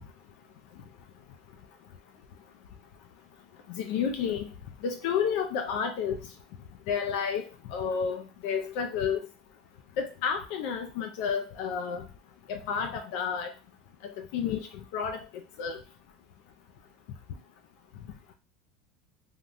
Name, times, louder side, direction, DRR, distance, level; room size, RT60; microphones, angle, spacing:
voice 1, 3.7-4.5 4.8-6.2 6.9-9.2 10.0-12.0 12.5-13.5 14.2-14.7 14.9-15.2 15.6-15.8, left 7 dB, 65° left, 4 dB, 0.4 m, -30 dB
3.4 x 2.3 x 2.5 m, 0.30 s
supercardioid pair, 130°, 0 cm